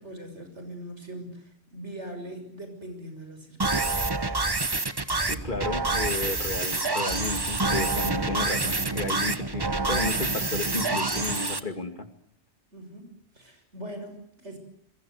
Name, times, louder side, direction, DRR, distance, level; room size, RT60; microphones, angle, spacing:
voice 1, 0.0-4.2 12.7-14.6, right 1 dB, 90° right, 6 dB, 6.6 m, -41 dB
sound 1, 3.6-11.6, right 3 dB, 20° right, 1.1 m, -27 dB
voice 2, 5.3-12.1, left 2 dB, 45° left, 7 dB, 2.5 m, -33 dB
27.0 x 22.0 x 8.1 m, 0.69 s
omnidirectional pair, 1.1 m